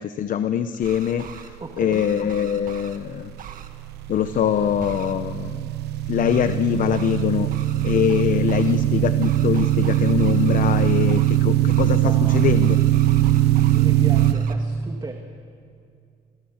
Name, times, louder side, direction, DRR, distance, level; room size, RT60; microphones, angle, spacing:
voice 1, 0.0-1.5 1.8-3.3 4.1-5.7 6.1-7.5 7.8-12.8, left 9 dB, 50° left, 10 dB, 0.9 m, -23 dB
sound 1, 0.7-1.5 1.9-3.0 3.4-3.7 4.8-5.1 6.2-6.6 6.9-7.2 7.5-8.8 9.2-11.4 11.7-12.0 12.3-13.9 14.1-14.5, right 7 dB, 55° right, 1.8 m, -41 dB
voice 2, 1.6-2.0 12.0-12.5 13.7-15.1, right 3 dB, 25° right, 4 dB, 1.9 m, -35 dB
sound 2, 3.5-14.3, right 14 dB, 80° right, 0.9 m, -21 dB
26.5 x 21.0 x 7.3 m, 2.4 s
cardioid pair, 110°, 17 cm